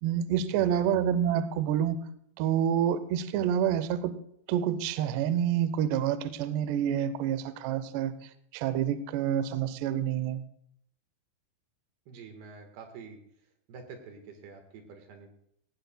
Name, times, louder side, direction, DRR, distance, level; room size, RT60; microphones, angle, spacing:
voice 1, 0.0-2.0 2.4-4.1 4.5-8.2 8.5-10.4, right 9 dB, 85° right, 13 dB, 2.4 m, -28 dB
voice 2, 0.5-0.8 12.1-13.2 13.7-15.3, right 5 dB, 65° right, 5 dB, 2.8 m, -47 dB
17.0 x 16.5 x 2.2 m, 0.72 s
omnidirectional pair, 5.8 m